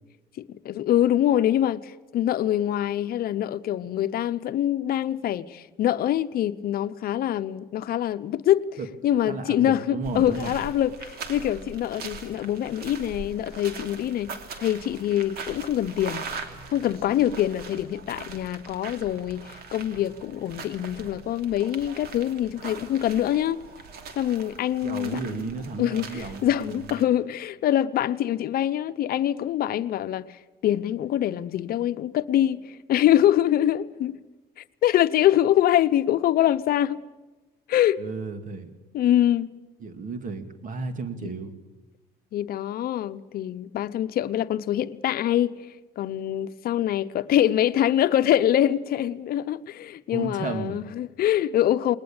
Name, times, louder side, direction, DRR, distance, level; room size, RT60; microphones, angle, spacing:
voice 1, 0.5-8.7 9.0-16.3 16.7-23.6 24.2-25.4 25.8-34.2 34.6-37.0 37.7-38.0 38.9-39.5 41.2-41.3 42.3-45.6 46.0-52.0, left 12 dB, 60° left, 0.8 m, -24 dB
voice 2, 9.3-10.5 24.8-27.0 38.0-38.7 39.8-41.5 50.1-50.8, right 4 dB, 50° right, 2.3 m, -33 dB
sound 1, 10.0-27.0, right 4 dB, 65° right, 2.9 m, -41 dB
20.5 x 20.0 x 8.8 m
cardioid pair, 110°, 17 cm